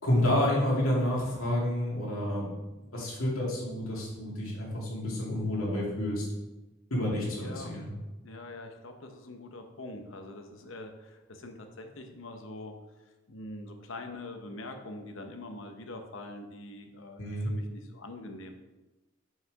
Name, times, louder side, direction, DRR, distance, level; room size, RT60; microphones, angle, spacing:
voice 1, 0.0-2.5 2.9-6.2 6.9-7.9 17.2-17.5, left 1 dB, 90° left, -4 dB, 2.4 m, -29 dB
voice 2, 7.4-7.8 8.2-12.7 13.3-17.2 17.4-18.5, left 2 dB, 70° left, 5 dB, 0.9 m, -43 dB
5.8 x 5.5 x 4.7 m, 1.1 s
head